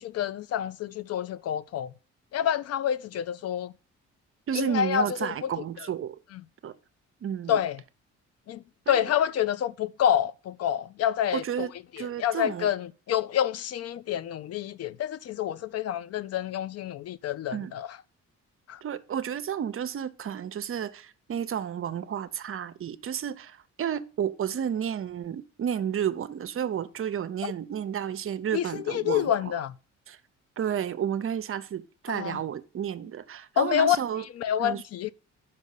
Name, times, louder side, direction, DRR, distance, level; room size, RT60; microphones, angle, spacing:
voice 1, 0.0-1.9 2.3-3.7 4.5-5.5 7.5-7.8 8.5-11.7 12.0-17.9 18.7-18.8 27.4-27.5 28.5-29.7 32.1-32.4 33.6-34.0 34.4-35.1, left 10 dB, 55° left, 0.4 m, -28 dB
voice 2, 4.5-6.2 6.6-6.7 7.2-7.6 8.9-9.1 11.3-12.7 17.5-17.7 18.8-29.5 30.1-30.2 30.6-34.2 34.6-34.8, right 9 dB, 45° right, 0.6 m, -32 dB
5.4 x 5.3 x 6.5 m
cardioid pair, 90°, 30 cm